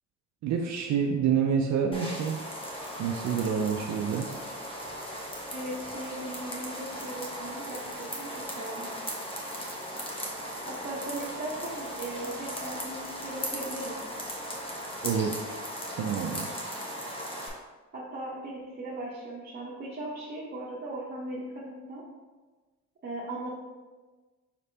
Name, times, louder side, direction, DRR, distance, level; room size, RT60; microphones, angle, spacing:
voice 1, 0.4-2.4 3.0-4.3 15.0-15.4 16.0-16.6, right 7 dB, 65° right, 2 dB, 0.5 m, -28 dB
sound 1, 1.9-17.5, equal, 20° left, 0.9 m, -37 dB
voice 2, 5.5-8.9 10.7-14.0 17.4-17.6 17.9-22.0 23.0-23.5, right 1 dB, 35° right, -5 dB, 0.9 m, -38 dB
5.0 x 3.3 x 2.8 m, 1.3 s
cardioid pair, 90°, 30 cm